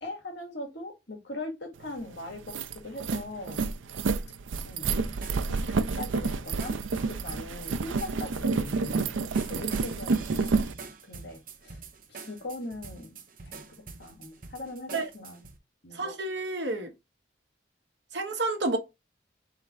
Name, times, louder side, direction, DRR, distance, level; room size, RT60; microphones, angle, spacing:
voice 1, 0.0-3.6 4.6-4.9 5.4-6.8 7.1-9.2 9.5-11.8 12.1-13.2 13.5-15.4 15.8-16.1, left 2 dB, 65° left, 1.9 m, -40 dB
sound 1, 1.9-2.0 2.3-10.7, right 4 dB, 85° right, 0.5 m, -29 dB
sound 2, 4.5-15.6, right 4 dB, 45° right, 0.8 m, -46 dB
voice 2, 15.9-16.9 18.1-18.8, right 2 dB, 65° right, 1.2 m, -30 dB
3.8 x 3.2 x 4.1 m
head